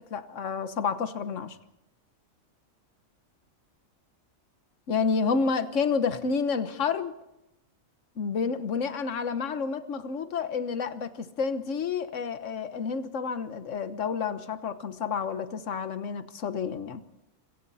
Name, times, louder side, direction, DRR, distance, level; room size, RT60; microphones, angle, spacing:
voice 1, 0.0-1.6 4.9-7.1 8.2-17.0, left 5 dB, 65° left, 11 dB, 1.5 m, -29 dB
26.5 x 25.0 x 4.2 m, 0.89 s
omnidirectional pair, 1.4 m